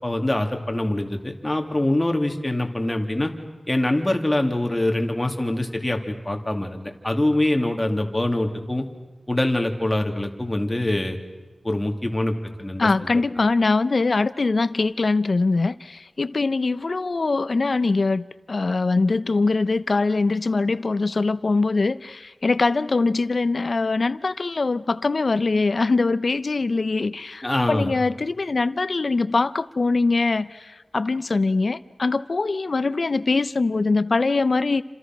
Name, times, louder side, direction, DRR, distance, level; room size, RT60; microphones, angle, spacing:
voice 1, 0.0-3.3 3.7-8.8 9.3-11.2 11.6-12.9 27.4-27.9, left 1 dB, 20° left, 3 dB, 2.9 m, -24 dB
voice 2, 12.8-34.8, left 3 dB, 60° left, 14 dB, 0.8 m, -22 dB
29.5 x 27.0 x 6.1 m, 1.2 s
wide cardioid pair, 65°, 0 cm